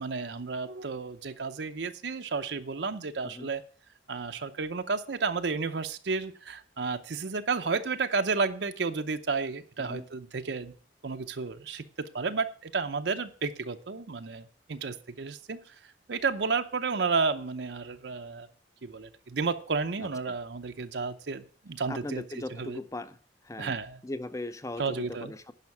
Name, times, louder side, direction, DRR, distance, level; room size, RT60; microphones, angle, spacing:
voice 1, 0.0-3.6 4.1-10.7 11.0-18.5 18.8-22.2 22.5-22.8 23.6-24.0 24.8-25.3, right 4 dB, 75° right, 8 dB, 0.7 m, -32 dB
voice 2, 21.9-23.2 23.4-23.7 24.0-25.5, left 2 dB, 20° left, 13 dB, 0.6 m, -38 dB
11.0 x 5.7 x 7.0 m, 0.43 s
head